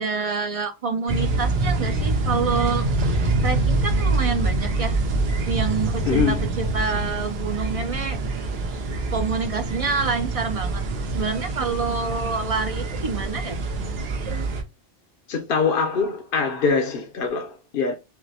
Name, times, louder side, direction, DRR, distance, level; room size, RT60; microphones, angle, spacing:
voice 1, 0.0-2.9 3.4-5.0 5.4-8.2 9.1-10.8 11.1-13.6 14.3-14.5, right 5 dB, 40° right, 0.6 m, -27 dB
sound 1, 1.1-14.6, right 2 dB, 75° right, 1.0 m, -25 dB
voice 2, 6.1-6.4 15.3-17.9, left 5 dB, 60° left, 0.8 m, -23 dB
5.8 x 2.1 x 2.7 m
omnidirectional pair, 1.1 m